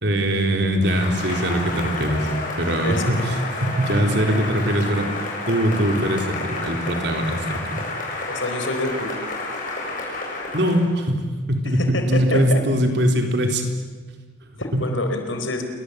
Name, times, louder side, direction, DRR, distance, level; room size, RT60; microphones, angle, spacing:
voice 1, 0.0-2.3 2.6-3.4 3.6-5.1 5.5-7.8 10.5-13.7 14.7-14.9, equal, 60° right, 4 dB, 4.1 m, -21 dB
Cheering / Applause, 0.8-10.9, left 2 dB, 45° left, 7.8 m, -30 dB
voice 2, 2.8-3.3 8.3-9.1 11.7-12.6 14.5-15.6, left 2 dB, 85° left, 6 dB, 4.6 m, -27 dB
28.5 x 23.5 x 8.3 m, 1.4 s
head